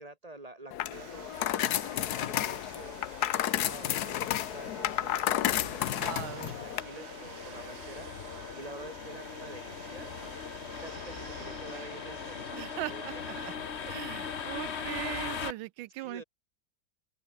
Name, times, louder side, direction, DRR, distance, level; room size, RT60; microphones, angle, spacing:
voice 1, 0.0-3.0 3.4-8.1 8.6-10.3 10.6-13.2 16.0-16.2, right 2 dB, 20° right, 2.1 m, -48 dB
sound 1, 0.7-6.8, left 12 dB, 65° left, 1.2 m, -31 dB
sound 2, 0.9-13.6, right 11 dB, 60° right, 1.3 m, -51 dB
sound 3, 1.3-15.5, left 6 dB, 40° left, 1.3 m, -41 dB
voice 2, 6.0-6.6 12.5-13.5 13.8-16.2, right 17 dB, 85° right, 1.4 m, -39 dB
omnidirectional pair, 2.1 m